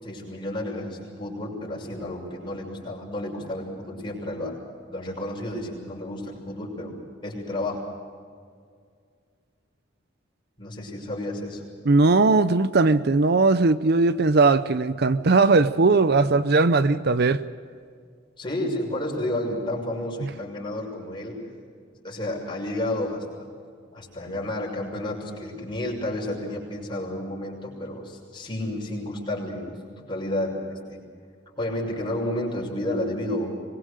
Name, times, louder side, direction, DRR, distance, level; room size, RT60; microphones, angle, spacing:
voice 1, 0.0-4.6 4.9-6.9 7.2-7.9 10.6-11.6 18.4-21.4 22.0-23.5 23.9-31.0 31.6-33.5, left 1 dB, 25° left, -1 dB, 6.3 m, -31 dB
voice 2, 11.8-17.5 20.2-20.3, right 3 dB, 55° right, 13 dB, 0.6 m, -19 dB
24.5 x 21.5 x 6.6 m, 2.1 s
head